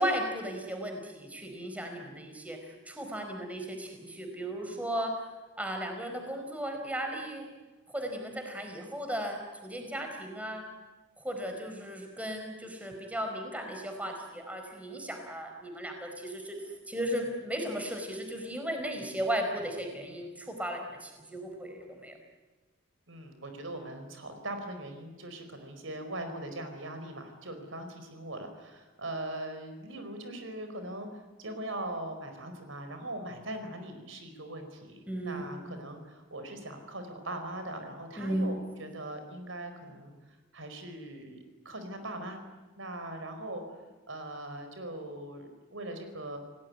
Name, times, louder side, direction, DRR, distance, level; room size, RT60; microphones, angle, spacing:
voice 1, 0.0-5.3 5.6-7.5 7.9-10.7 11.2-16.6 16.9-22.1 35.1-35.4 38.2-38.5, equal, 5° right, 4 dB, 4.7 m, -35 dB
voice 2, 23.1-40.1 40.5-42.4 42.8-43.6 44.1-46.4, right 1 dB, 70° right, 7 dB, 4.8 m, -40 dB
29.5 x 18.5 x 9.7 m, 1.2 s
head